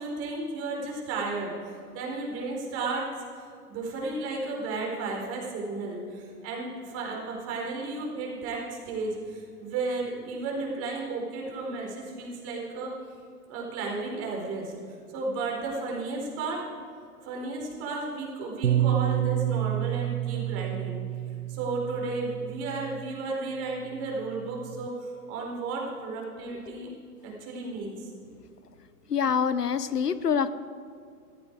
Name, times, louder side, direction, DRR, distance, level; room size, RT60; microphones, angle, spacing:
voice 1, 0.0-3.1 3.4-12.9 13.5-14.7 15.1-16.6 17.2-21.0 21.5-26.9 27.2-28.3, right 3 dB, 30° right, -1 dB, 4.5 m, -33 dB
Bass guitar, 18.6-23.1 23.9-24.9, right 12 dB, 80° right, 0.9 m, -29 dB
voice 2, 29.1-30.5, left 7 dB, 90° left, 14 dB, 0.8 m, -25 dB
17.5 x 14.5 x 4.7 m, 2.4 s
figure-of-eight pair, 115°, 46 cm